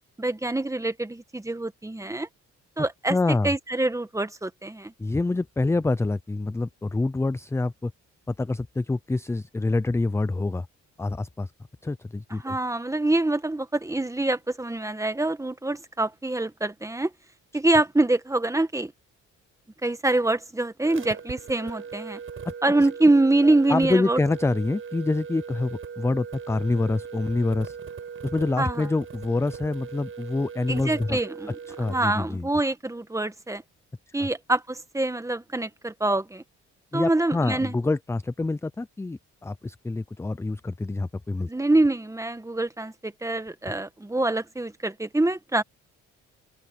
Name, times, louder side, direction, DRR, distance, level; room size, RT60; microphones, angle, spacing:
voice 1, 0.2-2.3 2.8-3.2 3.4-4.9 12.4-17.1 17.5-18.9 19.8-22.2 22.6-24.2 28.6-28.8 30.7-31.5 31.9-33.6 34.1-36.4 36.9-37.7 41.5-45.6, right 2 dB, 10° right, 1.6 m, -25 dB
voice 2, 3.1-3.5 5.0-7.9 8.3-10.7 11.0-11.5 11.8-12.6 22.4-22.5 23.4-27.8 28.2-31.2 31.7-32.5 34.2-34.3 36.9-41.5, left 2 dB, 10° left, 0.4 m, -26 dB
sound 1, 20.8-32.2, right 6 dB, 45° right, 6.3 m, -39 dB
open air
cardioid pair, 90°, 30 cm